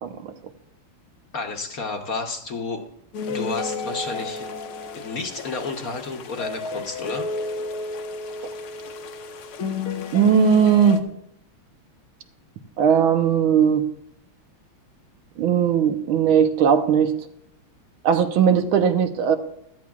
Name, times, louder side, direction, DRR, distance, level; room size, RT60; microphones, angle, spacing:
voice 1, 0.0-0.3 10.1-11.0 12.8-13.8 15.4-17.1 18.0-19.4, right 7 dB, 80° right, 8 dB, 1.6 m, -18 dB
voice 2, 1.3-2.8 3.3-4.5 5.0-7.3, left 3 dB, 55° left, 3 dB, 1.2 m, -31 dB
sound 1, 3.1-11.0, left 4 dB, 85° left, 1.8 m, -32 dB
17.0 x 12.5 x 2.3 m, 0.74 s
omnidirectional pair, 2.2 m